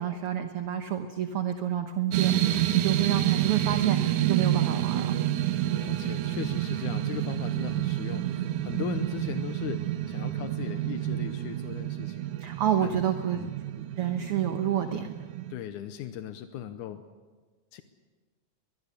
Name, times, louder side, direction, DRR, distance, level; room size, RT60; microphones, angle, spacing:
voice 1, 0.0-5.1 12.4-13.5 14.0-15.1, right 10 dB, 60° right, 7 dB, 1.6 m, -29 dB
sound 1, 2.1-15.5, right 13 dB, 80° right, 2.4 m, -29 dB
voice 2, 5.7-12.2 12.8-13.0 13.3-13.5 15.5-17.0 17.7-17.8, left 10 dB, 85° left, 9 dB, 2.3 m, -38 dB
22.5 x 22.0 x 6.7 m, 1.4 s
omnidirectional pair, 3.5 m